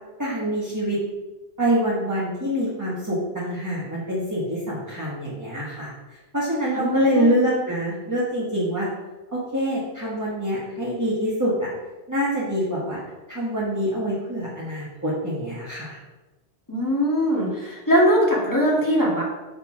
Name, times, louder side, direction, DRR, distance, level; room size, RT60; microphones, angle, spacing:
voice 1, 0.2-1.0 1.6-5.9 6.3-8.9 9.3-11.7 12.1-13.0 13.3-16.0, equal, 15° right, -7 dB, 1.6 m, -25 dB
voice 2, 6.7-7.4 16.7-19.2, equal, 15° left, -5 dB, 2.1 m, -21 dB
6.6 x 5.1 x 5.9 m, 1.1 s
omnidirectional pair, 1.2 m